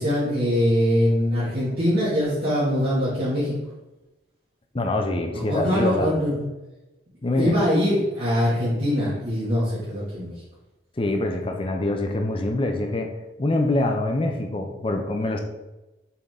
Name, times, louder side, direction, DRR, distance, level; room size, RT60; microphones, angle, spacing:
voice 1, 0.0-3.6 5.3-6.4 7.4-10.3, equal, 55° right, -11 dB, 2.1 m, -23 dB
voice 2, 4.7-6.2 7.2-7.5 11.0-13.1 13.4-15.4, left 2 dB, 30° left, 4 dB, 0.5 m, -25 dB
6.9 x 3.8 x 3.6 m, 1.0 s
head